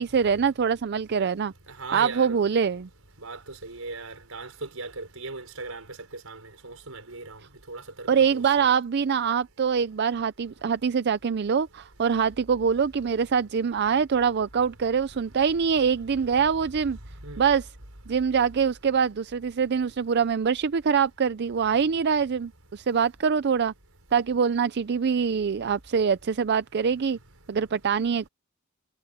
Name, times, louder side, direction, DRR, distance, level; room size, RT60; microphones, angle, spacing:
voice 1, 0.0-1.5 1.9-2.9 8.1-17.0 17.4-17.7 18.1-23.7 24.1-27.2 27.5-28.3, right 6 dB, 55° right, 0.5 m, -24 dB
voice 2, 1.8-2.4 3.2-5.8 6.2-7.4 7.7-8.4 17.2-17.4, right 3 dB, 85° right, 5.2 m, -38 dB
head